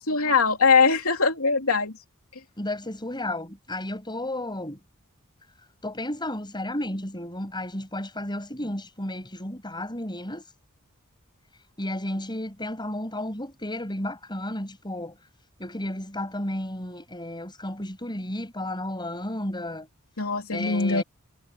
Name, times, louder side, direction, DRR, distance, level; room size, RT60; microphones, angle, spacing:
voice 1, 0.1-1.9 20.2-21.0, left 4 dB, 70° left, 3.4 m, -21 dB
voice 2, 2.6-4.8 5.8-10.4 11.8-15.2 15.6-19.9 20.5-21.0, left 1 dB, 20° left, 6.9 m, -33 dB
head